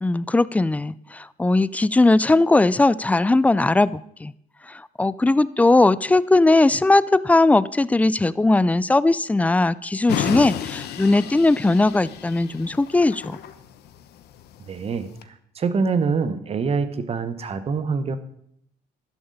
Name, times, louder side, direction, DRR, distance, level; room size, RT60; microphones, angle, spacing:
voice 1, 0.0-4.3 4.7-13.4, left 2 dB, 10° left, 18 dB, 0.4 m, -19 dB
sound 1, 10.1-15.2, left 10 dB, 75° left, 1.0 m, -32 dB
voice 2, 14.7-18.2, right 5 dB, 35° right, 12 dB, 1.1 m, -25 dB
12.0 x 11.5 x 4.1 m, 0.72 s
cardioid pair, 110°, 17 cm